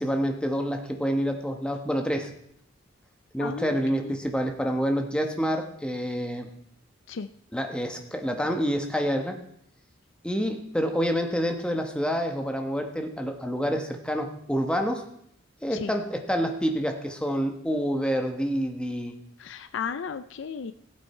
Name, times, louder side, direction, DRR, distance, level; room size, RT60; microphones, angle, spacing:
voice 1, 0.0-2.3 3.3-6.5 7.5-9.4 10.2-15.0 15.6-19.2, equal, 5° left, 4 dB, 1.2 m, -27 dB
voice 2, 3.4-4.1 7.1-7.3 15.7-15.9 19.4-20.7, left 6 dB, 65° left, 11 dB, 0.4 m, -34 dB
16.0 x 8.8 x 4.3 m, 0.73 s
head